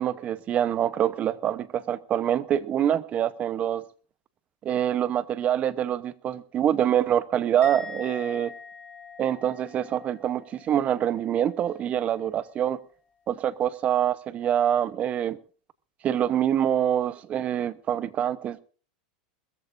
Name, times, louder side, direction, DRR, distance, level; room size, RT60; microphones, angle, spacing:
voice 1, 0.0-3.8 4.6-8.5 9.2-12.8 13.3-15.4 16.0-18.6, right 10 dB, 35° right, 0.9 m, -25 dB
Musical instrument, 7.6-11.0 11.3-11.7, left 5 dB, 30° left, 3.9 m, -43 dB
21.0 x 14.0 x 2.6 m
supercardioid pair, 120°, 4 cm